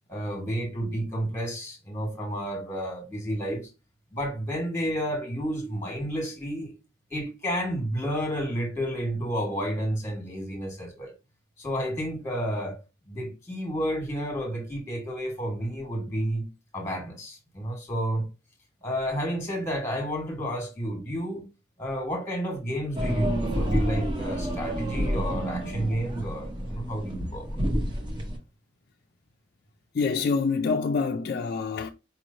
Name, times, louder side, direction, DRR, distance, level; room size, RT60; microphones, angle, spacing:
voice 1, 0.1-3.7 4.1-6.7 7.1-11.1 11.6-12.8 13.1-16.5 16.7-18.3 18.8-21.4 21.8-27.6, equal, 15° left, 1.4 m, -31 dB
sound 1, 22.9-28.4, equal, 25° right, 0.8 m, -29 dB
voice 2, 29.9-31.9, left 4 dB, 50° left, 0.3 m, -26 dB
4.7 x 3.1 x 2.6 m
head